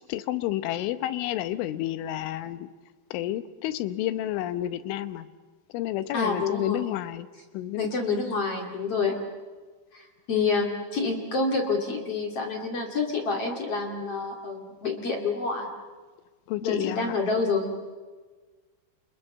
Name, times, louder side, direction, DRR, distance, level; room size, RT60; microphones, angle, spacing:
voice 1, 0.0-2.7 3.1-5.3 5.7-7.3 7.5-7.9 16.5-17.2, left 13 dB, 90° left, 12 dB, 3.5 m, -30 dB
voice 2, 6.1-6.8 7.8-9.2 9.9-15.7 16.6-17.7, left 4 dB, 40° left, 2 dB, 2.7 m, -28 dB
29.5 x 28.0 x 7.2 m, 1.4 s
omnidirectional pair, 5.4 m